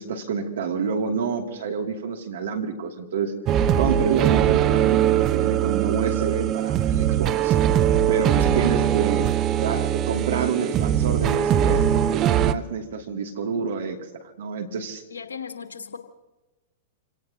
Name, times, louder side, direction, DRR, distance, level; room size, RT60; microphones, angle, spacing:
voice 1, 0.0-3.3 3.8-7.6 8.1-9.3 9.6-14.0 14.4-15.0, right 6 dB, 70° right, 3 dB, 2.6 m, -28 dB
sound 1, 3.5-12.5, right 10 dB, 35° right, 0.7 m, -21 dB
voice 2, 8.3-8.8 15.1-16.0, left 6 dB, 85° left, 6 dB, 1.6 m, -37 dB
28.0 x 18.0 x 2.9 m, 1.1 s
hypercardioid pair, 105°, 0 cm